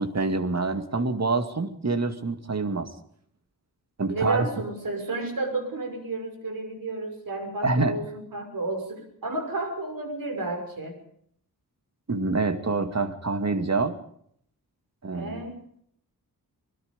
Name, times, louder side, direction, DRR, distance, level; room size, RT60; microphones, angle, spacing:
voice 1, 0.0-2.9 4.0-4.5 7.6-8.0 12.1-14.0 15.0-15.4, right 3 dB, 45° right, 8 dB, 2.1 m, -26 dB
voice 2, 4.1-10.9 15.1-15.6, right 2 dB, 60° right, 4 dB, 6.1 m, -32 dB
24.5 x 21.5 x 5.2 m, 0.66 s
wide cardioid pair, 135°, 38 cm